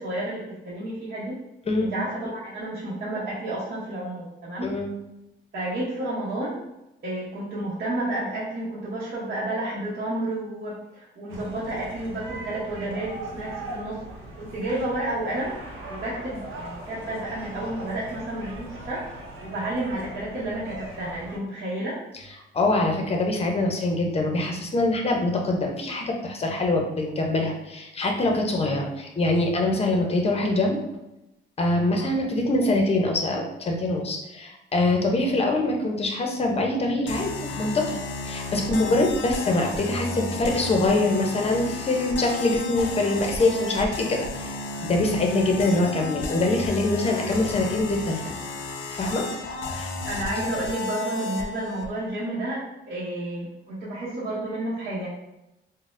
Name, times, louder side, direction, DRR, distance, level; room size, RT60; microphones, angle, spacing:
voice 1, 0.0-1.3 1.8-4.7 5.5-6.6 7.0-14.0 14.4-19.0 19.4-22.0 50.1-55.1, right 1 dB, 55° right, -8 dB, 0.9 m, -31 dB
voice 2, 4.6-4.9 22.5-30.8 31.6-38.0 38.2-44.5 44.8-48.2 48.9-49.3 49.7-49.9, left 2 dB, 30° left, 2 dB, 0.6 m, -24 dB
sound 1, 11.3-21.4, right 1 dB, 80° right, 0.7 m, -40 dB
sound 2, 37.1-51.9, left 3 dB, 75° left, 0.5 m, -33 dB
3.9 x 2.1 x 2.5 m, 0.92 s
cardioid pair, 90°, 20 cm